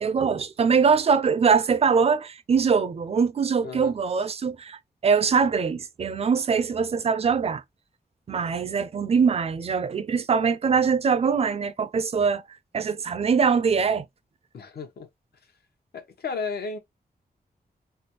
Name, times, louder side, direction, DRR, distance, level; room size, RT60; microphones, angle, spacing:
voice 1, 0.0-4.8 5.0-7.6 8.3-12.4 12.7-14.1, right 6 dB, 40° right, 0.4 m, -22 dB
voice 2, 3.6-4.3 14.5-15.1 15.9-16.8, left 4 dB, 75° left, 0.9 m, -34 dB
3.4 x 2.3 x 2.8 m
wide cardioid pair, 125°, 17 cm